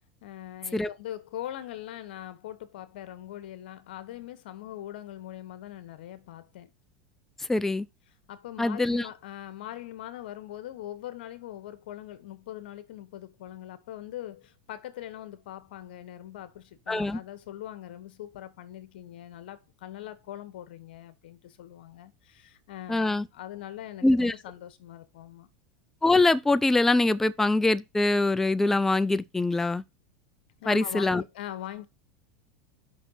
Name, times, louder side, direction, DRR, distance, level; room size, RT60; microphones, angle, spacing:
voice 1, 0.2-6.7 8.3-25.5 30.6-31.9, left 12 dB, 80° left, 1.1 m, -42 dB
voice 2, 7.4-7.9 8.6-9.1 16.9-17.2 22.9-23.2 24.0-24.3 26.0-29.8 30.7-31.2, left 2 dB, 5° left, 0.3 m, -23 dB
5.7 x 4.2 x 5.4 m
supercardioid pair, 110°, 5 cm